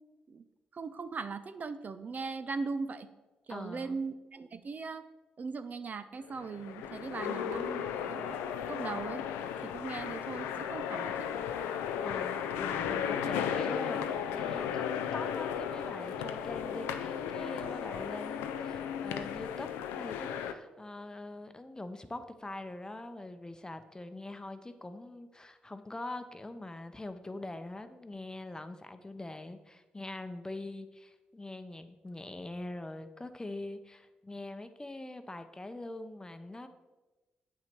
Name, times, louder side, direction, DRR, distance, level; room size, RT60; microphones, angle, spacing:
voice 1, 0.7-3.1 3.5-5.0 5.4-8.3 8.7-9.2 9.6-11.3, right 4 dB, 50° right, 11 dB, 0.5 m, -39 dB
voice 2, 3.5-4.0 12.0-19.7 20.0-36.7, left 2 dB, 20° left, 9 dB, 0.7 m, -43 dB
sound 1, 6.2-20.5, left 8 dB, 85° left, 0.4 m, -35 dB
7.6 x 5.9 x 4.5 m, 1.1 s
hypercardioid pair, 45°, 4 cm